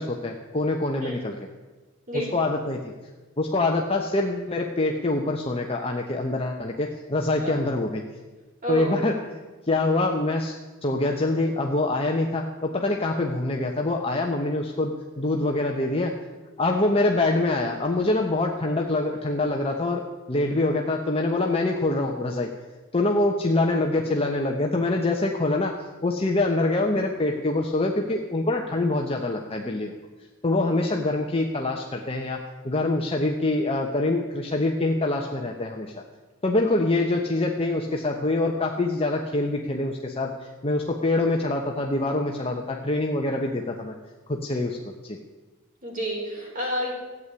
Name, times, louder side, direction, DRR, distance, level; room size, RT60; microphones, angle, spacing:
voice 1, 0.0-1.4 2.1-2.9 3.4-8.0 8.7-9.2 9.7-10.5 10.8-16.1 16.6-20.0 20.3-22.5 22.9-29.9 30.4-32.4 32.6-35.9 36.4-44.0 44.3-44.8 45.0-45.2, left 2 dB, 25° left, 1 dB, 1.0 m, -25 dB
voice 2, 8.6-9.0 30.6-30.7 45.8-46.9, equal, 40° right, -2 dB, 4.7 m, -30 dB
14.5 x 8.4 x 9.7 m, 1.3 s
head